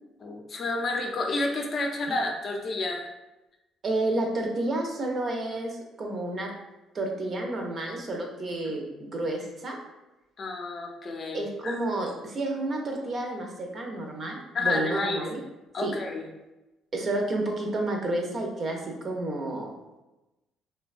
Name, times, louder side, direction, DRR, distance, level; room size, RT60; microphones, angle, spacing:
voice 1, 0.2-3.1 10.4-11.7 14.5-15.2 15.7-16.3, left 2 dB, 50° left, 2 dB, 0.4 m, -30 dB
voice 2, 3.8-6.5 6.9-9.8 11.3-15.4 15.8-15.9 16.9-19.7, right 2 dB, 45° right, 1 dB, 0.6 m, -30 dB
2.7 x 2.2 x 2.4 m, 1.0 s
supercardioid pair, 80°, 0 cm